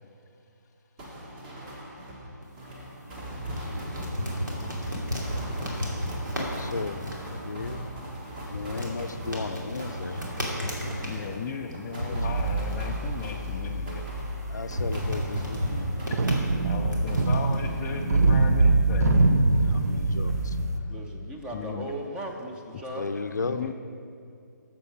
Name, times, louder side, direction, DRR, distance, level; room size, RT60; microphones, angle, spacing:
sound 1, 1.0-16.7 17.1-18.4, equal, 30° right, 1.9 m, -40 dB
sound 2, 2.4-20.6, equal, 80° right, 2.7 m, -35 dB
voice 1, 6.3-7.0 7.3-7.8 8.5-10.2 10.9-11.5 12.1-12.6 14.5-16.1 19.5-20.7 22.9-23.7, left 4 dB, 65° left, 10 dB, 0.5 m, -35 dB
voice 2, 11.0-14.0 16.6-19.3 21.5-21.9 23.4-23.7, left 6 dB, 15° left, 0 dB, 0.3 m, -36 dB
sound 3, 12.2-20.8, right 2 dB, 55° right, 0.7 m, -24 dB
voice 3, 20.9-23.1, right 1 dB, 10° right, 2 dB, 0.7 m, -37 dB
13.0 x 7.4 x 4.9 m, 2.5 s
figure-of-eight pair, 140°, 10 cm